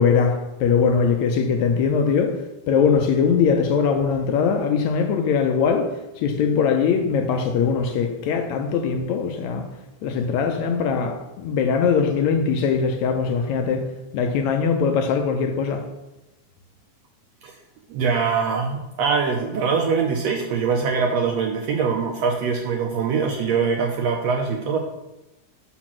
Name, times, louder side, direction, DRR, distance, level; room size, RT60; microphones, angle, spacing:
voice 1, 0.0-2.4 2.7-9.6 10.0-13.9 14.1-15.8, left 6 dB, 75° left, 5 dB, 1.8 m, -21 dB
voice 2, 17.9-24.8, right 5 dB, 80° right, 2 dB, 1.5 m, -23 dB
5.8 x 5.1 x 6.0 m, 0.96 s
omnidirectional pair, 3.5 m